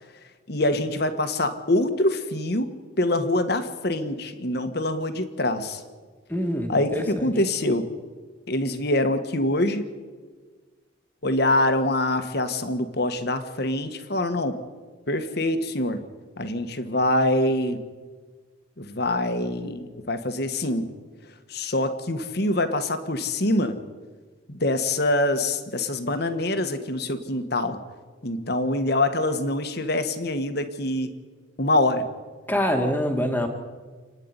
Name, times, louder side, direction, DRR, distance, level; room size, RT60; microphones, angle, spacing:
voice 1, 0.5-5.8 6.7-7.9 8.5-9.9 11.2-14.6 15.1-16.0 16.4-17.8 18.8-20.9 21.5-23.8 24.5-27.8 28.2-31.1 31.6-32.1, left 1 dB, 50° left, 9 dB, 1.5 m, -25 dB
voice 2, 6.3-7.3 32.5-33.5, equal, 10° left, 4 dB, 2.0 m, -25 dB
28.5 x 9.8 x 9.8 m, 1.5 s
head